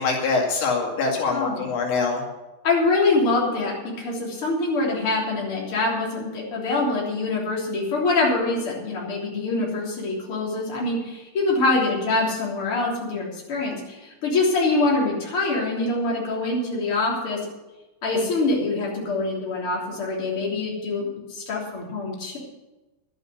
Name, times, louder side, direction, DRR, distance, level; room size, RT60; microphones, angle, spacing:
voice 1, 0.0-2.2, left 4 dB, 90° left, -1 dB, 4.7 m, -24 dB
voice 2, 1.3-1.6 2.6-17.4 18.0-22.4, left 3 dB, 30° left, -4 dB, 3.8 m, -24 dB
12.0 x 9.1 x 7.9 m, 1.1 s
omnidirectional pair, 5.0 m